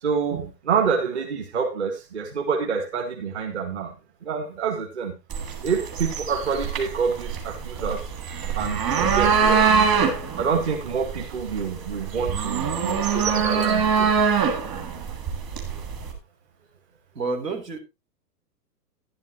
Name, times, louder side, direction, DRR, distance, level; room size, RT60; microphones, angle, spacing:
voice 1, 0.0-4.0 4.2-5.1 5.6-8.1 8.6-9.9 10.4-14.1, right 6 dB, 45° right, 1.9 m, -27 dB
sound 1, 5.3-16.1, right 6 dB, 20° right, 1.6 m, -24 dB
voice 2, 17.2-17.8, right 3 dB, 85° right, 3.5 m, -29 dB
11.5 x 11.0 x 3.0 m
hypercardioid pair, 175°, 47 cm